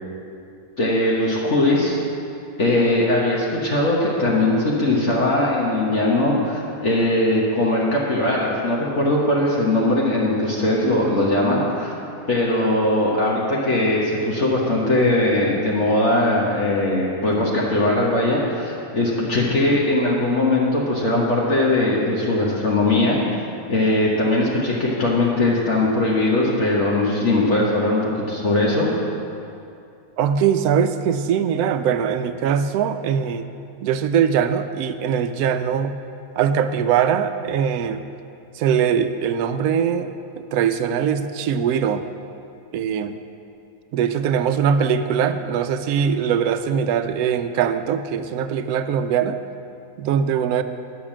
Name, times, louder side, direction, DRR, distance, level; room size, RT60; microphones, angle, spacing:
voice 1, 0.8-2.0 2.6-11.9 12.3-23.2 23.7-28.9, left 2 dB, 55° left, -5 dB, 1.6 m, -20 dB
voice 2, 30.2-33.4 33.8-35.9 36.4-38.0 38.5-42.0 42.7-43.2 43.9-49.4 50.0-50.6, right 8 dB, 85° right, 10 dB, 1.1 m, -21 dB
10.0 x 6.9 x 7.3 m, 2.6 s
omnidirectional pair, 1.5 m